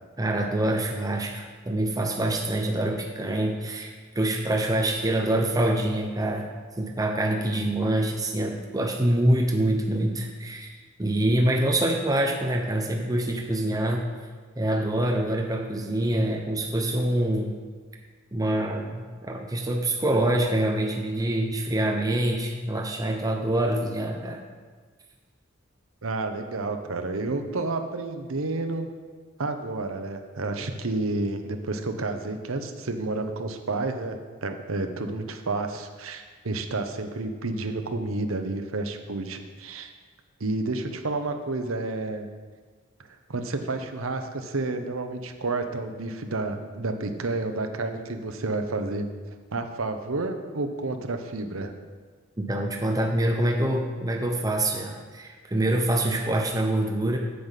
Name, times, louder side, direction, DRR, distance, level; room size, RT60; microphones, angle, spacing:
voice 1, 0.2-6.5 6.8-10.7 11.0-14.0 14.6-17.6 18.3-24.4 52.4-57.2, right 1 dB, 20° right, 1 dB, 0.7 m, -25 dB
voice 2, 26.0-28.9 29.4-39.9 40.4-42.3 43.3-49.0 49.5-51.7, right 2 dB, 75° right, 6 dB, 0.9 m, -30 dB
8.5 x 7.6 x 5.7 m, 1.5 s
head